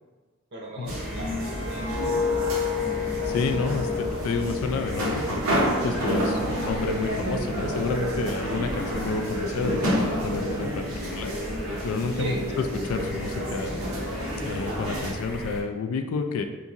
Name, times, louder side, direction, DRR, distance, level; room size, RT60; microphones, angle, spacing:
voice 1, 0.5-2.7 12.2-12.6, right 2 dB, 55° right, -2 dB, 0.7 m, -38 dB
sound 1, 0.8-15.1, equal, 90° right, 0.7 m, -29 dB
sound 2, 0.9-15.6, equal, ahead, 0.4 m, -39 dB
sound 3, 1.0-6.0 6.4-6.7, left 7 dB, 30° left, 0.8 m, -31 dB
voice 2, 3.2-11.3 11.8-12.3 12.8-13.7 14.4-16.4, left 4 dB, 80° left, 6 dB, 0.3 m, -30 dB
2.8 x 2.6 x 2.4 m, 1.3 s
head